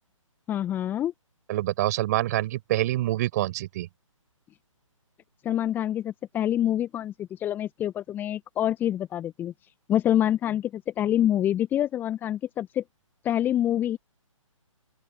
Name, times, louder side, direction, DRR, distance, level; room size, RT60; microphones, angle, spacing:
voice 1, 0.5-1.1 5.4-9.5 9.9-12.8 13.2-14.0, left 11 dB, 10° left, 1.4 m, -26 dB
voice 2, 1.5-3.9, right 15 dB, 30° right, 6.5 m, -26 dB
open air
figure-of-eight pair, 135°, 17 cm